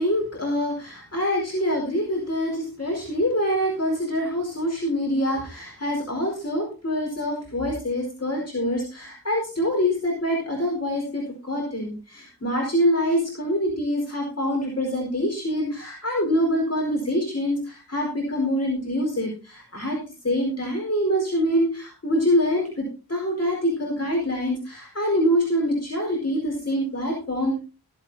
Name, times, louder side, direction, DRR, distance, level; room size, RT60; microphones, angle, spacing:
voice 1, 0.0-20.0 20.2-27.6, equal, 40° left, -2 dB, 4.5 m, -25 dB
22.5 x 8.1 x 2.8 m, 0.33 s
wide cardioid pair, 55°, 38 cm